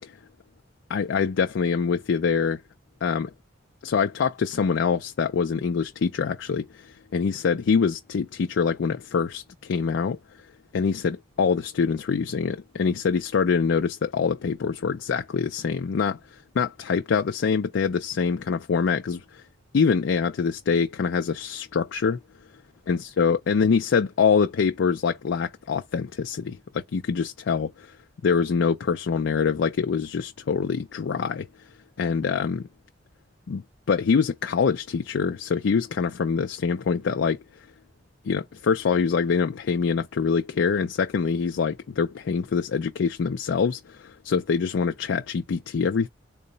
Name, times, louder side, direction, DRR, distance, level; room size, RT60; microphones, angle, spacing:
voice 1, 0.9-2.6 3.0-3.3 3.8-10.2 10.7-16.2 16.6-19.4 19.7-22.2 22.9-28.0 28.2-31.5 32.0-32.7 33.5-37.4 38.2-46.1, left 5 dB, 80° left, 0.4 m, -25 dB
3.8 x 2.1 x 3.9 m
head